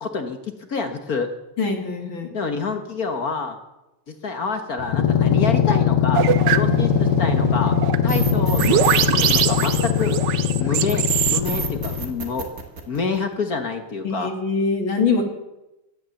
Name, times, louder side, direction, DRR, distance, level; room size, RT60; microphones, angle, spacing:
voice 1, 0.0-1.3 2.3-3.6 4.1-6.2 6.5-7.7 8.0-10.2 10.6-12.5 12.9-14.3, left 4 dB, 45° left, 6 dB, 1.6 m, -27 dB
voice 2, 1.6-2.3 14.0-15.2, left 4 dB, 65° left, 3 dB, 3.1 m, -23 dB
sound 1, 4.8-12.1, left 9 dB, 85° left, 2.0 m, -21 dB
sound 2, 6.1-11.4, right 10 dB, 65° right, 1.3 m, -23 dB
sound 3, 8.1-10.4 10.9-13.3, right 5 dB, 40° right, 2.3 m, -31 dB
17.0 x 12.0 x 7.1 m, 0.94 s
omnidirectional pair, 2.4 m